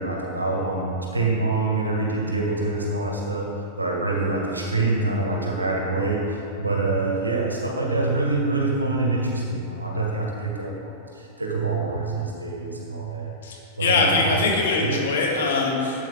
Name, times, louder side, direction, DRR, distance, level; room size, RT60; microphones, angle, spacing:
voice 1, 0.0-3.5 3.8-13.3 13.8-14.3 14.8-15.0, right 3 dB, 80° right, -2 dB, 1.8 m, -25 dB
voice 2, 13.4-16.1, left 3 dB, 60° left, -2 dB, 1.9 m, -22 dB
12.5 x 8.2 x 3.8 m, 2.8 s
figure-of-eight pair, 90°, 0 cm